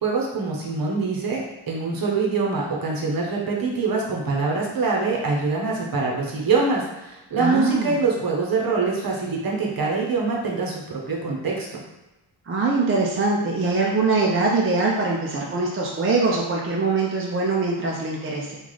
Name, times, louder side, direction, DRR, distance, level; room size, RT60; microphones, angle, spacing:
voice 1, 0.0-11.8, right 4 dB, 45° right, -2 dB, 0.8 m, -24 dB
voice 2, 7.4-8.0 12.5-18.6, right 3 dB, 30° right, -3 dB, 0.4 m, -23 dB
3.1 x 2.4 x 3.9 m, 1.0 s
wide cardioid pair, 155°, 48 cm